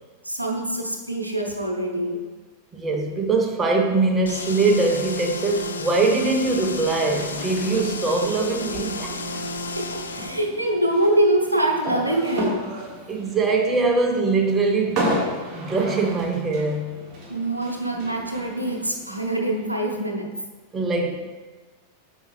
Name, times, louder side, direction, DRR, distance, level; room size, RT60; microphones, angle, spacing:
voice 1, 0.2-2.2 9.8-12.7 17.3-20.3, right 1 dB, 85° right, 1 dB, 0.8 m, -24 dB
voice 2, 2.7-9.2 13.1-15.1 15.5-17.1 20.7-21.3, right 3 dB, 20° right, 2 dB, 1.0 m, -22 dB
sound 1, 4.2-10.4, left 3 dB, 70° left, 0.5 m, -32 dB
sound 2, 7.1-20.0, equal, 35° right, 1.9 m, -34 dB
8.5 x 5.5 x 3.3 m, 1.3 s
figure-of-eight pair, 90°, 0 cm